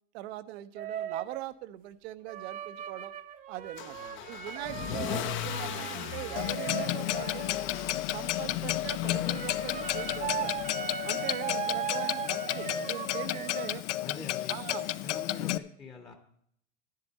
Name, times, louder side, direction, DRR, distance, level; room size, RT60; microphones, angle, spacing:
voice 1, 0.1-3.1 3.5-7.6 8.1-10.6 11.0-13.8 14.5-14.9, right 15 dB, 65° right, 12 dB, 0.9 m, -41 dB
sound 1, 0.8-1.4 2.3-8.0 9.1-13.8, right 8 dB, 25° right, 0.7 m, -38 dB
Car / Engine starting / Accelerating revving vroom, 3.8-10.9, left 10 dB, 35° left, 0.7 m, -40 dB
voice 2, 3.9-4.3 8.5-8.8 14.0-16.1, left 4 dB, 10° left, 4 dB, 1.0 m, -46 dB
Clock, 6.4-15.6, left 14 dB, 85° left, 0.6 m, -32 dB
11.0 x 10.5 x 4.1 m, 0.67 s
supercardioid pair, 135°, 34 cm